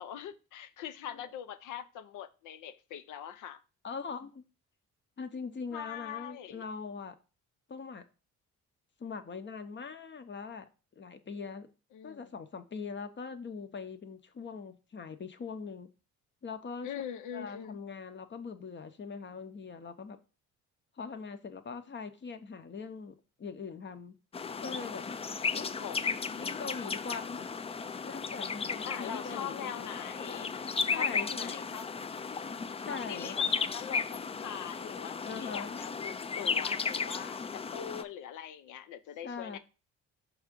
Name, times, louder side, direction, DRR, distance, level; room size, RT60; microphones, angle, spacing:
voice 1, 0.0-3.6 5.7-6.6 11.9-12.3 16.8-17.8 25.8-26.2 28.8-30.5 30.9-31.8 32.8-39.6, left 9 dB, 85° left, 0.7 m, -42 dB
voice 2, 3.8-4.4 5.2-7.2 7.7-8.0 9.0-10.7 11.0-11.7 12.0-15.9 16.4-16.9 17.3-20.2 21.0-24.2 24.6-25.0 25.5-27.5 28.0-29.7 30.8-31.7 32.8-33.4 35.3-35.8 39.2-39.6, left 5 dB, 40° left, 0.8 m, -42 dB
sound 1, 24.3-38.0, left 5 dB, 20° left, 0.3 m, -35 dB
5.4 x 3.6 x 5.2 m
cardioid pair, 90°, 30 cm